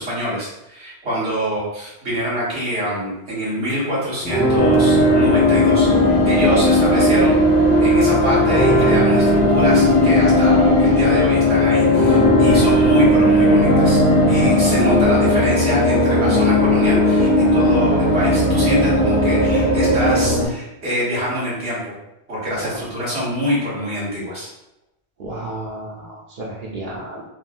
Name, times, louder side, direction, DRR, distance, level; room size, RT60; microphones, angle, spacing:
voice 1, 0.0-5.9 6.2-7.3 7.8-14.0 14.3-21.9 22.3-24.5, equal, 90° right, -8 dB, 1.7 m, -25 dB
sound 1, 4.2-15.0, equal, 75° left, 1.1 m, -23 dB
sound 2, 4.6-20.5, left 1 dB, 50° left, 0.9 m, -16 dB
voice 2, 25.2-27.2, right 1 dB, 55° right, -4 dB, 0.7 m, -32 dB
3.7 x 2.1 x 2.5 m, 0.88 s
omnidirectional pair, 1.1 m